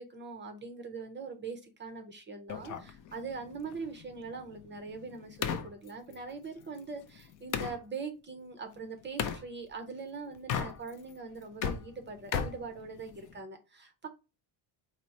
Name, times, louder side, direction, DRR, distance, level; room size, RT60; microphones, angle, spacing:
voice 1, 0.0-14.1, right 4 dB, 25° right, 6 dB, 0.5 m, -42 dB
sound 1, 2.5-7.8 9.2-9.4 10.4-11.1 11.4-13.4, left 7 dB, 45° left, 0.4 m, -37 dB
4.5 x 2.0 x 4.0 m, 0.30 s
cardioid pair, 150°, 47 cm